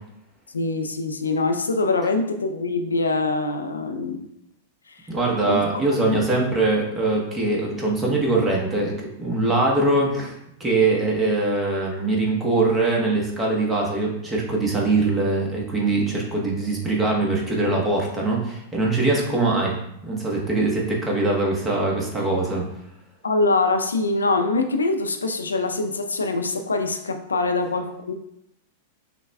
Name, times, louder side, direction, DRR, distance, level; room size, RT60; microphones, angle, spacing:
voice 1, 0.5-4.3 4.9-5.0 5.4-5.9 23.2-28.1, left 3 dB, 85° left, 7 dB, 0.4 m, -24 dB
voice 2, 5.1-10.3 10.6-22.7, right 2 dB, 15° right, -3 dB, 1.0 m, -22 dB
6.1 x 2.2 x 2.2 m, 0.78 s
hypercardioid pair, 100°, 0 cm